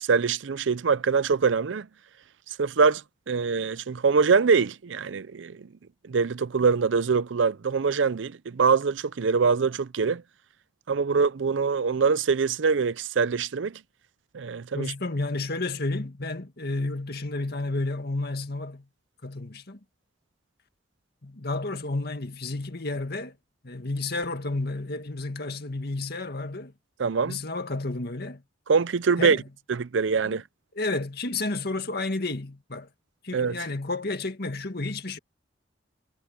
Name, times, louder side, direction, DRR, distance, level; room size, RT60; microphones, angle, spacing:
voice 1, 0.0-1.9 2.6-5.7 6.1-10.2 10.9-13.8 14.3-14.9 27.0-27.4 28.7-29.4 29.7-30.4 33.3-33.6, right 5 dB, 75° right, 0.5 m, -24 dB
voice 2, 14.7-18.9 19.2-19.8 21.2-23.4 23.6-26.7 27.3-28.4 29.2-29.4 30.8-32.9 33.2-35.2, left 2 dB, 55° left, 2.0 m, -31 dB
head